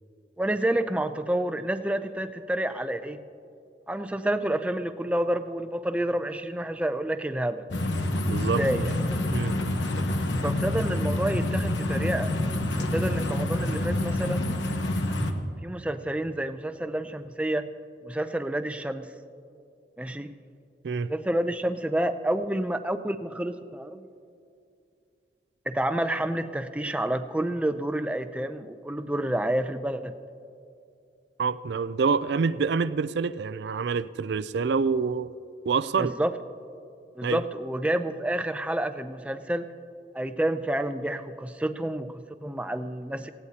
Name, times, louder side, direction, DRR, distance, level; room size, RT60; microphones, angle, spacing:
voice 1, 0.4-3.2 3.9-7.7 8.4-8.9 10.4-12.3 12.9-14.5 15.6-17.7 18.0-19.1 20.0-20.3 21.1-24.1 25.7-30.1 36.0-36.3 37.2-39.7 40.1-43.3, right 1 dB, 5° right, 9 dB, 0.4 m, -29 dB
sound 1, 7.7-15.3, left 1 dB, 90° left, 1.1 m, -27 dB
voice 2, 8.3-8.9 9.3-9.8 20.8-21.1 31.4-35.3 35.6-36.1 37.2-37.4, right 5 dB, 75° right, 14 dB, 0.4 m, -27 dB
19.0 x 16.0 x 2.8 m, 2.5 s
head